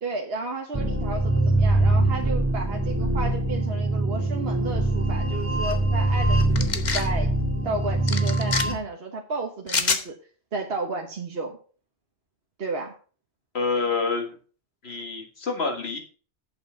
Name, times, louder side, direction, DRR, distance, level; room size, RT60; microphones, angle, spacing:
voice 1, 0.0-7.3 7.6-10.2 10.5-11.6 12.6-12.9, right 3 dB, 60° right, 2 dB, 1.5 m, -32 dB
sound 1, 0.7-8.7, right 2 dB, 10° right, 1.8 m, -23 dB
sound 2, 6.6-7.1 8.1-8.6 9.7-10.0, left 4 dB, 40° left, 1.1 m, -26 dB
voice 2, 13.5-14.3 14.8-16.0, left 4 dB, 65° left, 3 dB, 2.2 m, -27 dB
8.5 x 7.2 x 5.6 m, 0.40 s
omnidirectional pair, 1.2 m